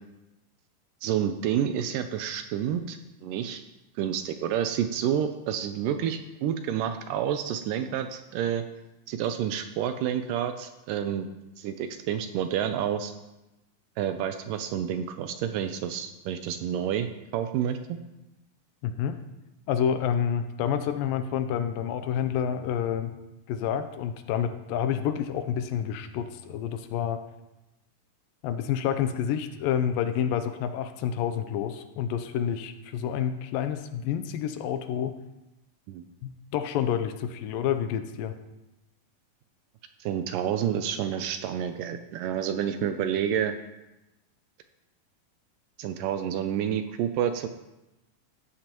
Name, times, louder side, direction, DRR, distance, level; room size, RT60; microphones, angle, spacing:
voice 1, 1.0-3.6 4.0-8.6 9.1-11.3 11.6-13.1 14.0-18.0 35.9-36.0 40.0-43.6 45.8-47.5, right 9 dB, 80° right, 8 dB, 2.0 m, -29 dB
voice 2, 18.8-19.2 19.7-23.2 23.5-27.2 28.4-35.1 36.2-38.3, left 9 dB, 80° left, 9 dB, 2.2 m, -28 dB
14.0 x 8.6 x 2.9 m, 0.96 s
omnidirectional pair, 4.1 m